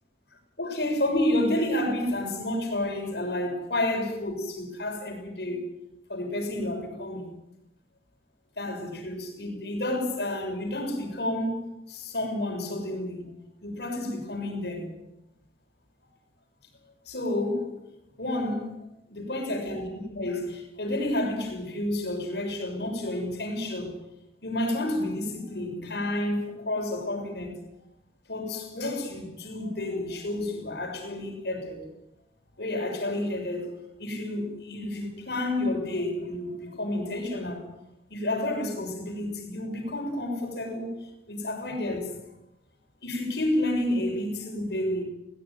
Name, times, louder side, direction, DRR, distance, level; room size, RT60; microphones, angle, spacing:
voice 1, 0.6-5.6 6.1-7.4 8.6-13.3 13.6-14.9 17.1-17.8 18.2-18.7 19.1-24.0 24.4-27.6 28.3-31.9 32.6-37.7 38.1-42.2 43.0-45.0, left 1 dB, 75° left, 6.7 m, -30 dB
22.0 x 18.0 x 9.3 m
head